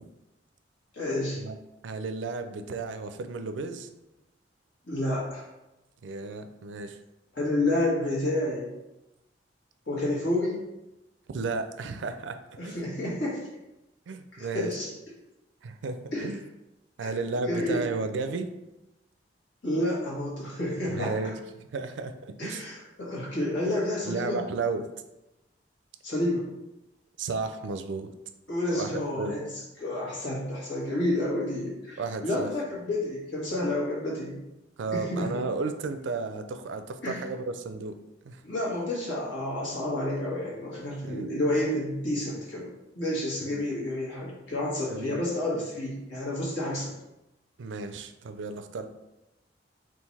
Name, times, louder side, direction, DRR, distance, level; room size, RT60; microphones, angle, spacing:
voice 1, 0.9-1.4 4.9-5.4 7.3-8.7 9.9-10.6 12.6-13.5 14.4-14.9 16.1-16.3 17.0-17.1 17.4-17.9 19.6-21.2 22.4-24.4 26.0-26.5 28.5-29.5 29.8-34.4 34.9-35.4 37.0-37.2 38.4-42.7 42.9-46.9, left 1 dB, 80° left, -5 dB, 1.4 m, -30 dB
voice 2, 1.8-3.9 6.0-7.0 11.3-12.8 14.1-14.7 15.6-16.4 17.0-18.5 20.8-22.6 24.0-24.9 27.2-28.1 28.7-28.9 29.2-29.4 32.0-32.5 34.8-37.9 38.2-38.4 41.0-41.3 43.4-43.6 44.8-45.2 47.6-48.9, right 3 dB, 85° right, 8 dB, 0.4 m, -33 dB
3.8 x 2.6 x 4.1 m, 0.95 s
head